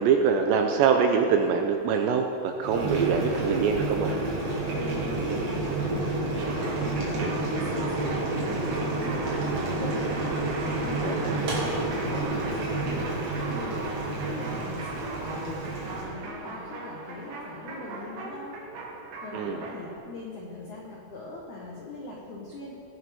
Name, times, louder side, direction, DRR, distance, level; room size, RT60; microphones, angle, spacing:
voice 1, 0.0-4.1 11.0-11.4 19.3-19.6, right 6 dB, 80° right, 4 dB, 2.6 m, -24 dB
Boiling, 2.6-16.1, right 2 dB, 40° right, 2.6 m, -30 dB
voice 2, 4.6-10.3 10.8-13.8 14.2-18.5 19.2-22.7, left 2 dB, 80° left, -2 dB, 1.7 m, -41 dB
sound 1, 6.4-19.9, right 2 dB, 65° right, 4.0 m, -38 dB
18.0 x 11.0 x 4.3 m, 2.5 s
omnidirectional pair, 5.6 m